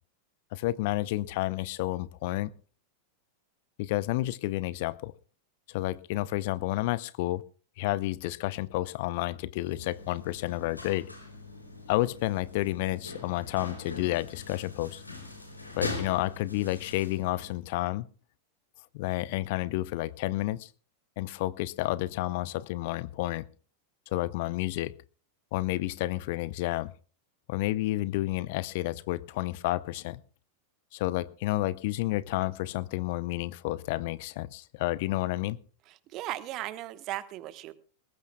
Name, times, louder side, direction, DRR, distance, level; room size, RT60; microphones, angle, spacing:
voice 1, 0.5-2.5 3.8-5.1 5.7-7.4 7.8-11.1 11.9-15.0 15.8-18.1 18.9-20.7 21.2-23.5 24.1-25.0 25.5-26.9 27.5-30.2 30.9-35.6, left 17 dB, 50° left, 20 dB, 0.6 m, -30 dB
sound 1, 9.6-17.5, left 2 dB, 85° left, 3.7 m, -42 dB
voice 2, 35.9-37.7, right 15 dB, 40° right, 14 dB, 1.2 m, -37 dB
21.0 x 19.0 x 2.3 m, 0.38 s
figure-of-eight pair, 90°, 0 cm